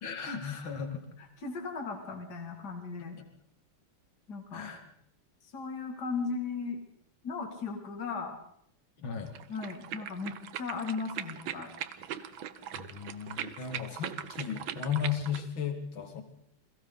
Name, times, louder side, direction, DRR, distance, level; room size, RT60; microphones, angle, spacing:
voice 1, 0.0-1.0 4.5-4.8 9.0-9.3 12.7-16.2, left 7 dB, 65° left, 5 dB, 3.1 m, -35 dB
voice 2, 1.2-3.2 4.3-4.7 5.5-6.8 7.2-8.4 9.5-11.7, left 4 dB, 45° left, 3 dB, 3.0 m, -37 dB
sound 1, 9.3-15.5, right 10 dB, 70° right, 1.7 m, -40 dB
30.0 x 22.0 x 4.0 m, 0.71 s
omnidirectional pair, 2.4 m